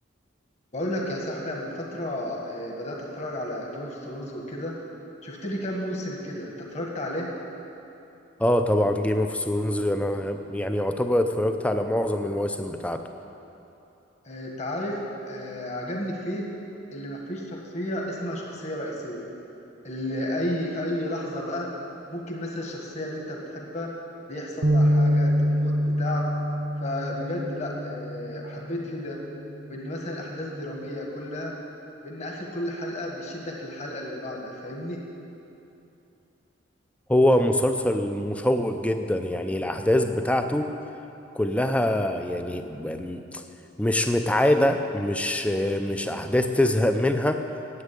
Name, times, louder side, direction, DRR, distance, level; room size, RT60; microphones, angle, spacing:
voice 1, 0.7-4.7 5.2-7.3 14.2-15.0 15.3-16.5 16.9-19.2 19.8-21.7 22.1-23.9 24.3-26.3 26.8-29.2 29.7-31.5 32.0-35.0, left 1 dB, 35° left, -1 dB, 1.6 m, -32 dB
voice 2, 8.4-13.0 37.1-40.7 41.3-43.4 43.8-47.4, left 1 dB, 5° left, 7 dB, 0.5 m, -24 dB
sound 1, 24.6-28.9 29.4-29.6 30.4-30.9, equal, 55° right, 0.8 m, -25 dB
9.7 x 8.4 x 8.3 m, 2.8 s
head